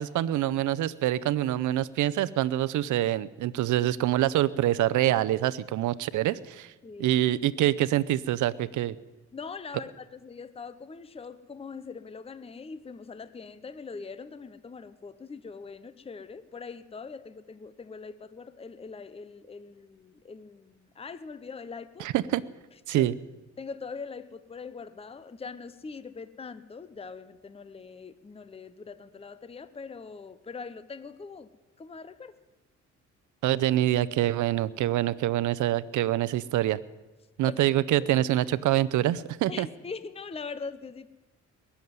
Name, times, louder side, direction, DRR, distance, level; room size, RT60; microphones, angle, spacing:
voice 1, 0.0-6.7 7.0-8.9 22.0-22.4 22.9-23.1 33.4-36.8 37.4-39.7, right 13 dB, 80° right, 17 dB, 0.7 m, -25 dB
voice 2, 6.8-7.2 9.3-22.1 22.9-23.1 23.6-31.5 31.8-32.4 37.4-37.6 39.5-41.1, left 5 dB, 20° left, 13 dB, 0.7 m, -42 dB
21.0 x 7.3 x 9.5 m, 1.1 s
cardioid pair, 90°, 30 cm